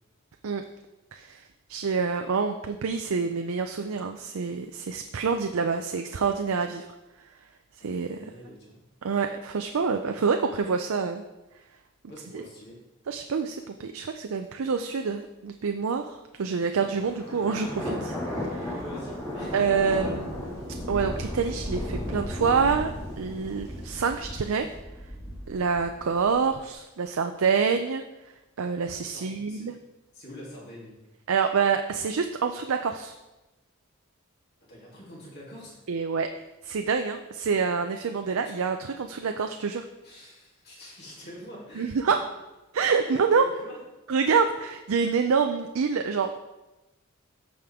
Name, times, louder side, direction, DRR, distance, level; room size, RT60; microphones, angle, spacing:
voice 1, 1.1-1.4 1.7-6.9 7.8-8.3 9.0-11.2 12.3-12.4 13.1-18.7 19.5-20.4 20.9-22.9 23.2-24.7 25.5-28.0 28.6-29.7 31.3-33.1 35.9-36.3 36.6-39.9 41.8-42.3 42.7-43.5 44.1-46.4, right 5 dB, 90° right, 6 dB, 0.5 m, -27 dB
voice 2, 7.8-8.8 12.1-12.8 18.7-19.8 29.0-29.7 30.1-31.0 34.7-35.7 38.4-38.5 40.0-42.1 43.0-43.8, equal, 50° left, -5 dB, 3.1 m, -45 dB
Thunder, 16.7-26.6, left 1 dB, 15° left, 2.3 m, -35 dB
14.0 x 5.1 x 3.6 m, 1.0 s
head